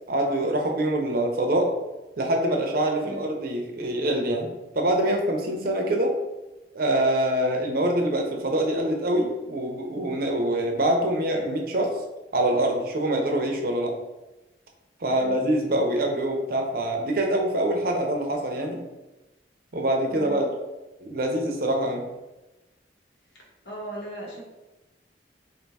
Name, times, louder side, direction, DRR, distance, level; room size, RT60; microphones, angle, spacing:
voice 1, 0.1-1.7 2.2-6.2 6.7-11.9 12.3-13.9 15.0-18.8 19.7-20.5 21.0-22.0, right 1 dB, 55° right, 2 dB, 0.6 m, -25 dB
voice 2, 15.0-15.4 20.1-20.4 23.3-24.4, right 1 dB, 80° left, -3 dB, 1.2 m, -39 dB
3.4 x 2.6 x 4.0 m, 1.0 s
head